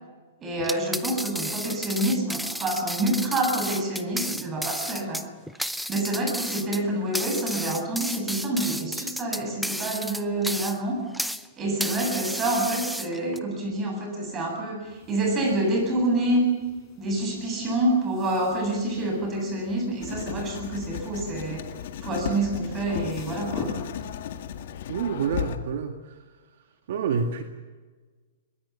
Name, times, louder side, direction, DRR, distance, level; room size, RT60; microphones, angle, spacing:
voice 1, 0.4-5.2 5.6-11.0 11.6-16.4 17.0-21.6 22.0-23.7, right 1 dB, 20° right, 2 dB, 7.9 m, -27 dB
sound 1, 0.6-11.5 11.8-13.4, equal, ahead, 0.7 m, -32 dB
sound 2, 14.8-24.6, left 4 dB, 15° left, 5.8 m, -45 dB
Writing, 20.0-25.6, left 9 dB, 60° left, 1.9 m, -35 dB
voice 2, 24.9-25.9 26.9-27.4, right 6 dB, 65° right, 6 dB, 1.9 m, -27 dB
23.0 x 21.0 x 7.2 m, 1.4 s
hypercardioid pair, 145°, 0 cm